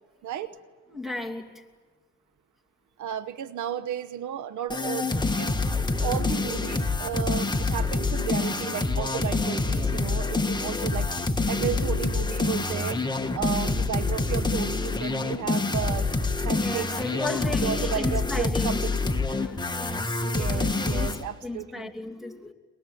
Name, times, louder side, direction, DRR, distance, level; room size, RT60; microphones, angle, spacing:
voice 1, 0.2-0.6 3.0-5.5 6.0-11.1 11.5-13.0 13.3-16.1 16.4-17.2 17.5-19.0 20.2-21.9, right 10 dB, 75° right, 1.1 m, -33 dB
voice 2, 0.9-1.6 9.7-10.4 13.3-13.5 16.4-19.0 19.3-22.5, left 2 dB, ahead, 2.8 m, -35 dB
sound 1, 4.7-21.2, left 3 dB, 15° left, 1.7 m, -27 dB
23.5 x 22.5 x 9.3 m
cardioid pair, 90°, 30 cm